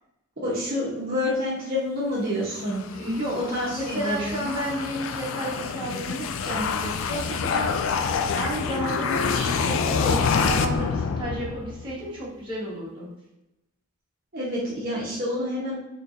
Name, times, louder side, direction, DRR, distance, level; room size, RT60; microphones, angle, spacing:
voice 1, 0.4-2.9 3.5-4.4 14.3-15.8, left 1 dB, 45° right, -7 dB, 0.9 m, -28 dB
sound 1, 2.6-11.9, left 5 dB, 65° left, 0.3 m, -27 dB
voice 2, 2.9-3.4 3.7-7.7 8.0-8.1 8.3-13.1, right 1 dB, 20° right, -7 dB, 1.2 m, -32 dB
4.4 x 3.1 x 2.5 m, 0.95 s
head